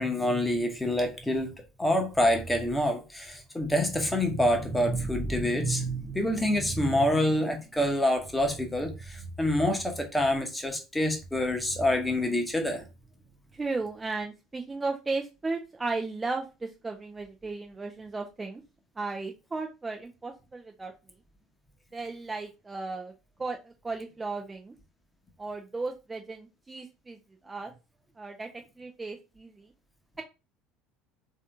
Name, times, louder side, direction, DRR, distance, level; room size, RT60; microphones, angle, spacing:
voice 1, 0.0-1.5 1.8-12.8, left 1 dB, 10° left, 1.1 m, -27 dB
voice 2, 13.5-18.6 19.0-20.9 21.9-23.1 23.4-24.7 25.4-27.2 27.4-27.7 28.2-28.5 28.8-29.7, right 3 dB, 15° right, 0.5 m, -35 dB
3.5 x 2.8 x 3.5 m
figure-of-eight pair, 65°, 0 cm